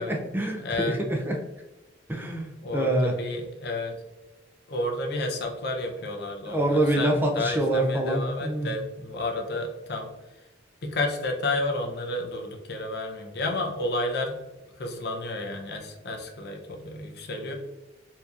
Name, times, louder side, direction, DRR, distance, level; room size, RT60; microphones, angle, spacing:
voice 1, 0.0-1.3 2.1-3.1 6.5-8.7, right 1 dB, 10° right, 1 dB, 0.4 m, -26 dB
voice 2, 0.6-1.0 2.6-3.9 4.7-10.1 10.8-14.4 14.8-17.5, left 2 dB, 55° left, 2 dB, 0.6 m, -31 dB
4.3 x 2.7 x 2.4 m, 1.0 s
head